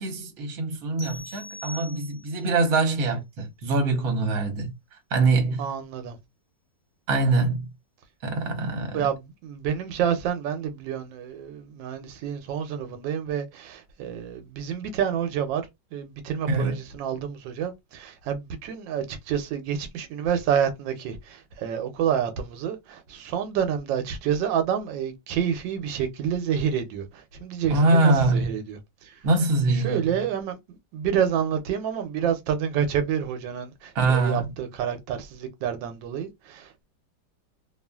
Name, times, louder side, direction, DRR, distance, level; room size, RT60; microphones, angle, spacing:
voice 1, 0.0-4.7 5.1-5.7 7.1-7.7 8.2-9.1 16.5-16.8 27.7-28.5 29.2-30.2 33.9-34.4, right 3 dB, 60° right, 1.2 m, -23 dB
sound 1, 1.0-2.5, left 1 dB, 45° left, 1.1 m, -42 dB
voice 2, 5.6-6.2 8.8-15.7 15.9-29.1 29.7-36.8, right 8 dB, 90° right, 1.3 m, -28 dB
2.9 x 2.4 x 2.2 m
omnidirectional pair, 1.9 m